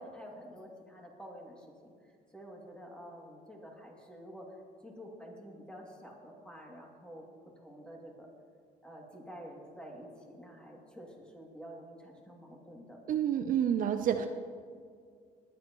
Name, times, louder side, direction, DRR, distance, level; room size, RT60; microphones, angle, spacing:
voice 1, 0.0-1.9 2.3-4.5 4.8-7.3 7.6-8.3 8.8-13.0, equal, 5° left, -1 dB, 2.6 m, -49 dB
voice 2, 13.1-14.3, right 9 dB, 55° right, 7 dB, 0.6 m, -29 dB
20.0 x 10.5 x 3.1 m, 2.1 s
cardioid pair, 110°, 17 cm